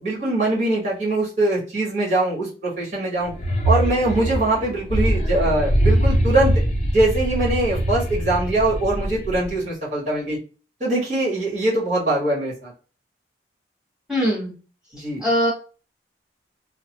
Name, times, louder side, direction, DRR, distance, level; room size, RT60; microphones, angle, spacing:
voice 1, 0.0-3.3 3.6-6.6 6.9-10.4 10.8-12.7 14.9-15.2, right 2 dB, 40° right, -5 dB, 1.6 m, -22 dB
sound 1, 3.2-9.6, right 1 dB, 35° left, 0.6 m, -22 dB
voice 2, 14.1-14.5 15.2-15.5, equal, 5° right, -7 dB, 1.6 m, -21 dB
3.0 x 2.0 x 2.9 m, 0.36 s
head